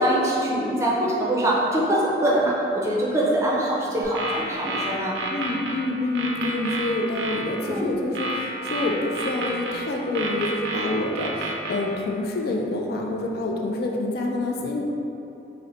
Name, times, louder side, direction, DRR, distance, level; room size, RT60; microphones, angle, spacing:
voice 1, 0.0-5.1 7.6-7.9, right 1 dB, 15° right, -6 dB, 0.5 m, -23 dB
sound 1, 4.0-5.8 6.1-7.4 8.1-9.8 10.1-11.8, right 2 dB, 70° right, 0.5 m, -29 dB
voice 2, 5.3-14.8, left 2 dB, 55° left, 0 dB, 0.3 m, -27 dB
3.8 x 2.1 x 3.9 m, 2.8 s
head